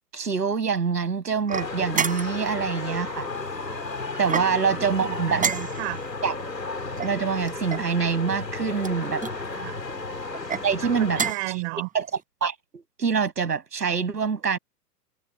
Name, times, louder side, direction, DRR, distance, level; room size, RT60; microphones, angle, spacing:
voice 1, 0.1-3.3 4.2-5.4 6.2-6.4 7.0-9.2 10.6-11.2 11.9-12.1 12.4-14.6, right 6 dB, 75° right, 6.9 m, -25 dB
sound 1, 1.5-11.3, left 3 dB, 90° left, 3.3 m, -33 dB
sound 2, 1.5-2.5 4.2-4.8 5.4-6.1 7.0-7.9 8.8-9.4 10.3-10.7 11.1-11.6, right 6 dB, 15° right, 7.1 m, -30 dB
voice 2, 4.7-6.0 9.5-9.8 10.7-11.9, right 31 dB, 40° right, 4.1 m, -34 dB
figure-of-eight pair, 105°, 48 cm